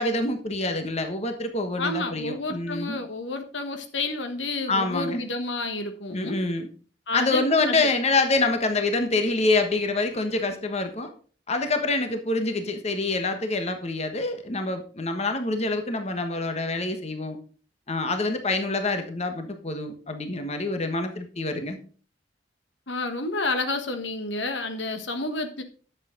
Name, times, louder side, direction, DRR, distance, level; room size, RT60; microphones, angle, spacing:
voice 1, 0.0-3.0 4.7-5.2 6.1-6.7 7.1-11.1 11.5-17.4 17.9-21.8, left 2 dB, 40° left, 7 dB, 1.3 m, -26 dB
voice 2, 1.8-6.4 7.1-7.9 22.9-25.6, left 2 dB, 90° left, 7 dB, 1.5 m, -30 dB
10.5 x 7.6 x 3.8 m, 0.40 s
head